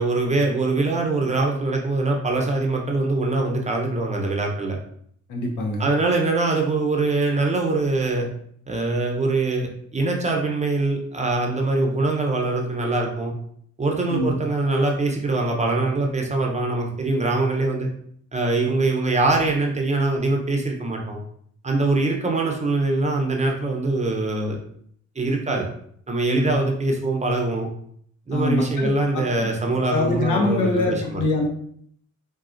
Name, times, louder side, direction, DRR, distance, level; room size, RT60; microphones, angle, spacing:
voice 1, 0.0-4.8 5.8-8.3 8.7-13.3 13.8-17.9 18.3-21.2 21.6-24.6 25.2-25.7 26.1-27.7 28.3-31.2, right 2 dB, 25° right, 1 dB, 0.7 m, -23 dB
voice 2, 5.3-5.9 14.1-14.4 26.3-26.5 28.3-29.5 29.9-31.5, left 2 dB, 80° left, 0 dB, 0.8 m, -24 dB
4.0 x 2.3 x 2.5 m, 0.64 s
cardioid pair, 90°, 30 cm